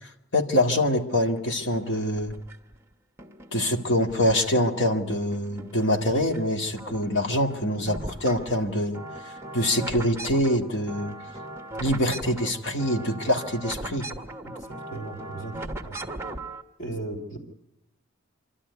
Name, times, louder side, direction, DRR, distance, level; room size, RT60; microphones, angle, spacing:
voice 1, 0.3-2.3 3.5-9.0 9.5-11.2 11.8-14.1, left 1 dB, 65° left, 4 dB, 2.0 m, -25 dB
sound 1, 1.3-2.7 3.2-4.8 5.1-6.4 6.7-16.6, right 2 dB, 15° right, 1.2 m, -39 dB
voice 2, 14.4-15.5 15.8-16.0 16.8-17.4, right 2 dB, 40° left, -1 dB, 3.1 m, -36 dB
26.5 x 12.5 x 9.5 m, 0.89 s
head